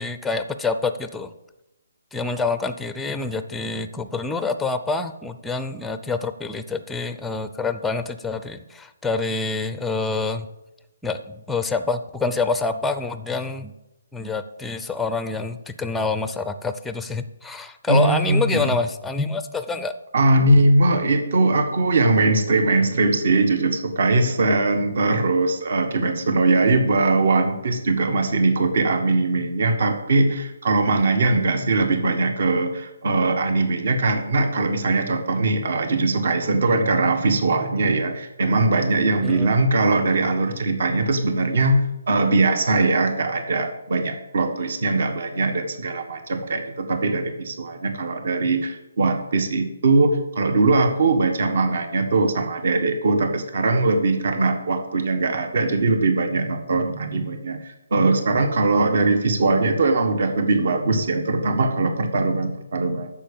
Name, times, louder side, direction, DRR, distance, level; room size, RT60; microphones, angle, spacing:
voice 1, 0.0-1.3 2.1-10.5 11.0-13.7 14.1-19.9 39.2-39.5, left 3 dB, 5° left, 10 dB, 0.5 m, -26 dB
voice 2, 17.9-18.7 20.1-63.1, right 2 dB, 60° right, 7 dB, 1.5 m, -21 dB
10.0 x 7.2 x 7.1 m, 0.94 s
hypercardioid pair, 160°, 0 cm